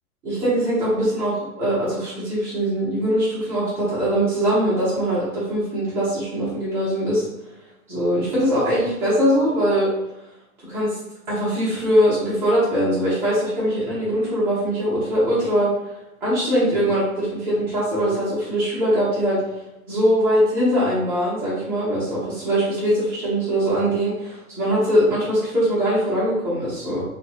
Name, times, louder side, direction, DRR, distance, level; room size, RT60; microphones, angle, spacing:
voice 1, 0.2-7.3 7.9-9.9 10.7-11.0 11.3-15.7 16.2-19.4 19.9-27.0, equal, 5° right, -10 dB, 0.3 m, -21 dB
2.7 x 2.2 x 3.0 m, 0.94 s
hypercardioid pair, 125°, 43 cm